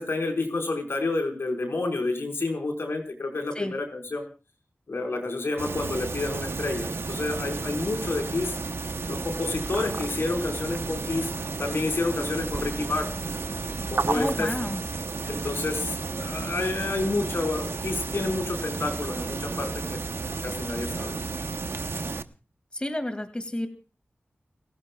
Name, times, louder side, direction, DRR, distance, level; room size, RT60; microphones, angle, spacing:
voice 1, 0.0-4.2 4.9-8.6 9.1-11.3 11.6-13.3 13.9-14.5 15.3-21.1, left 2 dB, 70° left, 4 dB, 4.9 m, -29 dB
sound 1, 5.6-22.2, right 4 dB, 70° right, 0.9 m, -32 dB
voice 2, 14.1-14.8 22.7-23.7, left 1 dB, 25° left, 7 dB, 2.2 m, -30 dB
30.0 x 14.5 x 2.4 m, 0.35 s
wide cardioid pair, 55°, 4 cm